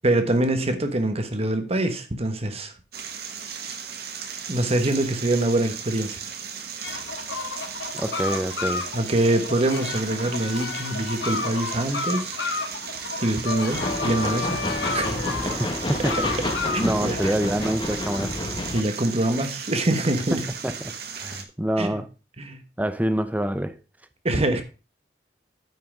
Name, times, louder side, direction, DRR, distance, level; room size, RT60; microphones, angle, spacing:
voice 1, 0.0-2.7 4.5-6.2 8.9-12.4 13.2-14.6 14.9-15.1 16.7-17.4 18.7-20.4 21.8-22.0 22.4-22.6 24.2-24.6, right 1 dB, 35° right, 1.2 m, -24 dB
sound 1, 2.9-21.4, right 7 dB, 65° right, 1.4 m, -36 dB
sound 2, 6.8-18.2, left 3 dB, 80° left, 1.4 m, -32 dB
voice 2, 7.9-8.9 15.6-16.3 16.8-18.3 20.6-20.7 21.2-22.1 22.8-23.7, right 1 dB, 10° right, 0.7 m, -26 dB
sound 3, 13.7-18.8, left 1 dB, 30° left, 1.3 m, -29 dB
9.3 x 5.7 x 4.9 m
head